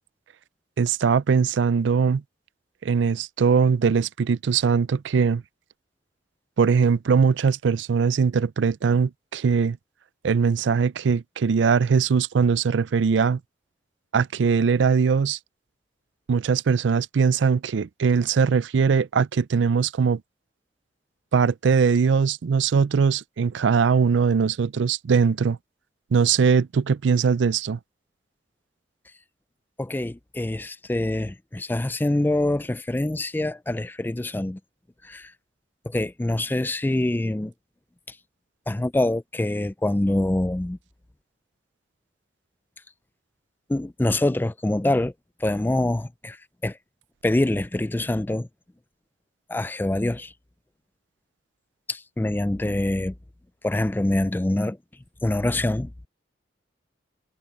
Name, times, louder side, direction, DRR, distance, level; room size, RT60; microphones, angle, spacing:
voice 1, 0.8-2.2 2.8-5.4 6.6-9.8 10.2-13.4 14.1-15.4 16.3-20.2 21.3-25.6 26.1-27.8, right 5 dB, 75° right, 0.4 m, -21 dB
voice 2, 29.8-34.6 35.0-35.3 35.8-37.5 38.1-38.2 38.7-40.8 43.7-45.1 45.4-46.4 46.6-46.8 47.2-48.5 49.5-50.3 51.9-53.1 53.6-54.8 55.2-55.9, left 1 dB, 10° left, 0.3 m, -25 dB
head